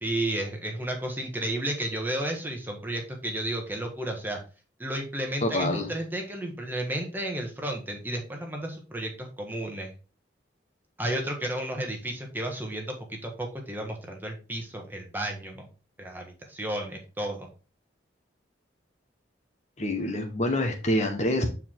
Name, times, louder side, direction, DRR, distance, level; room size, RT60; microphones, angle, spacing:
voice 1, 0.0-4.4 4.8-9.9 11.0-15.7 16.0-17.5, right 1 dB, 10° right, 2 dB, 1.4 m, -32 dB
voice 2, 5.4-5.9 19.8-21.5, left 1 dB, 40° left, 4 dB, 1.2 m, -26 dB
8.4 x 4.7 x 3.7 m, 0.34 s
head